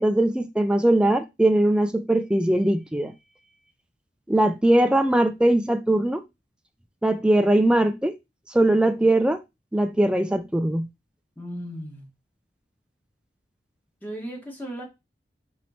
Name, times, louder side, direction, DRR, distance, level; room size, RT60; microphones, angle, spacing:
voice 1, 0.0-3.1 4.3-6.2 7.0-8.1 8.5-9.4 9.7-10.9, right 1 dB, 5° right, 0.4 m, -20 dB
voice 2, 11.4-12.1 14.0-14.8, equal, 10° left, 1.4 m, -35 dB
4.2 x 3.0 x 4.2 m
head